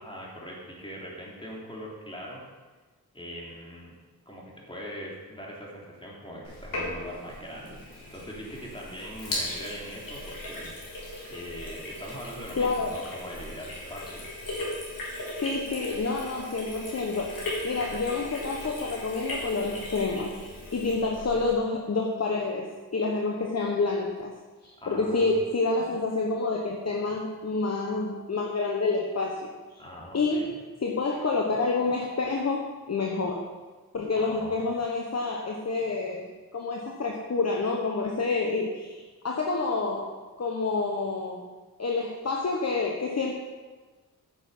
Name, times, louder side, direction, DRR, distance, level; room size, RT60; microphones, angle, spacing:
voice 1, 0.0-2.4 3.1-3.9 4.2-10.7 11.3-14.3 21.1-21.5 24.8-25.3 29.8-30.5 34.1-34.6, equal, 15° left, -4 dB, 3.3 m, -41 dB
Sink (filling or washing), 6.4-21.5, left 1 dB, 65° left, 3.7 m, -38 dB
voice 2, 12.6-13.0 15.4-17.3 17.6-20.3 20.7-24.3 24.6-29.5 30.1-30.5 30.8-33.4 33.9-36.3 36.5-41.4 41.8-43.3, left 3 dB, 45° left, -1 dB, 1.2 m, -28 dB
9.5 x 7.0 x 5.5 m, 1.3 s
cardioid pair, 70°, 36 cm